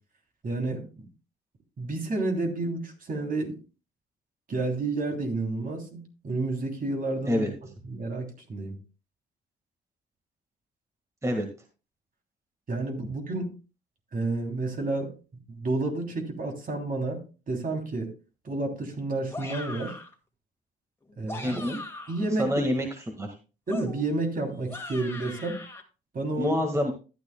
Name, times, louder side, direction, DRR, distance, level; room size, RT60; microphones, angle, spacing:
voice 1, 0.4-0.8 1.8-3.6 4.5-7.5 7.9-8.8 12.7-13.5 14.1-15.1 15.5-17.2 17.5-18.1 18.4-19.9 21.2-21.5 22.1-22.5 23.7-25.6 26.1-26.6, right 2 dB, 45° right, 2 dB, 3.0 m, -30 dB
sound 1, 19.3-20.1 21.1-22.3 23.7-25.8, left 2 dB, 10° left, 2.0 m, -40 dB
voice 2, 21.4-21.8 22.4-23.4 26.4-26.9, equal, 15° right, 3 dB, 1.6 m, -27 dB
13.5 x 10.0 x 2.2 m, 0.33 s
cardioid pair, 90°, 20 cm